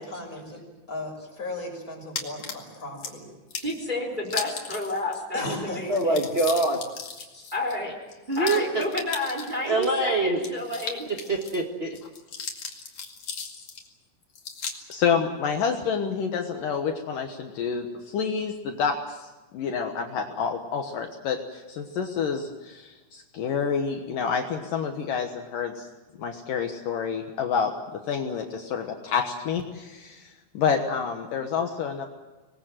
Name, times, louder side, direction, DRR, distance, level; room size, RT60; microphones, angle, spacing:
voice 1, 0.1-0.6 0.9-3.3 5.3-6.0, left 2 dB, 20° left, 0 dB, 6.7 m, -36 dB
sound 1, 2.2-3.1 3.5-3.8 4.3-5.2 5.4-5.5 5.8-9.9 10.4-11.6 11.9-13.9 14.4-15.0, left 5 dB, 45° left, 2.9 m, -36 dB
voice 2, 3.6-6.2 7.3-7.9 8.3-11.1, left 2 dB, 10° right, 1 dB, 3.6 m, -30 dB
voice 3, 5.9-6.8 8.3-8.8 9.6-10.4 11.3-12.0, right 2 dB, 50° right, 0 dB, 0.7 m, -24 dB
voice 4, 14.9-19.3 19.5-25.9 26.2-32.1, left 6 dB, 65° left, 4 dB, 2.7 m, -28 dB
25.5 x 20.0 x 7.6 m, 1.2 s
omnidirectional pair, 4.5 m